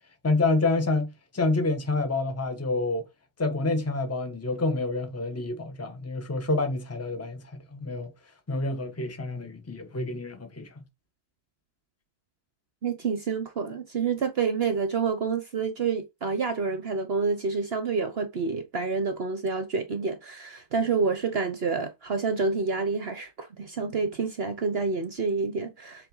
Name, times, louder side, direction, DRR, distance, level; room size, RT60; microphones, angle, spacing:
voice 1, 0.2-3.1 3.4-8.1 8.5-10.7, left 2 dB, 10° left, 1.0 m, -28 dB
voice 2, 12.8-26.1, right 4 dB, 50° right, 0.9 m, -28 dB
7.5 x 3.8 x 3.9 m
omnidirectional pair, 1.5 m